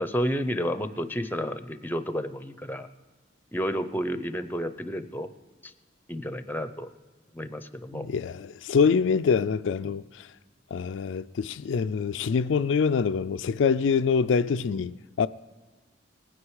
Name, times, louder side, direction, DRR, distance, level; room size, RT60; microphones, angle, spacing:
voice 1, 0.0-2.9 3.5-5.3 5.6-5.7 6.1-6.9 7.3-8.1 9.8-9.9 14.7-14.8, equal, 10° left, 0.6 m, -31 dB
voice 2, 7.9-10.0 10.7-15.3, left 6 dB, 80° left, 0.4 m, -25 dB
19.0 x 9.7 x 4.8 m
head